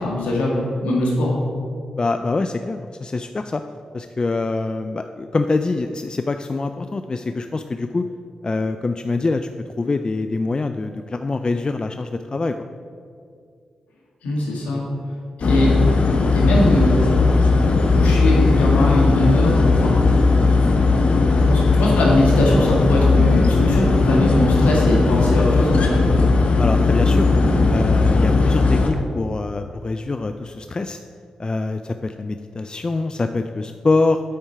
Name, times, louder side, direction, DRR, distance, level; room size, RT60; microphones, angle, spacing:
voice 1, 0.0-1.5 14.2-14.8 15.4-15.7 16.3-17.0 17.9-20.0 21.5-26.1, left 1 dB, 90° left, -4 dB, 1.7 m, -21 dB
voice 2, 2.0-3.6 3.9-8.1 8.4-9.5 9.8-12.6 26.6-27.3 27.7-31.0 31.4-34.2, left 3 dB, 40° left, 8 dB, 0.3 m, -24 dB
sound 1, 15.4-28.9, left 3 dB, 65° left, 0.9 m, -17 dB
8.4 x 4.5 x 5.6 m, 2.3 s
supercardioid pair, 45°, 2 cm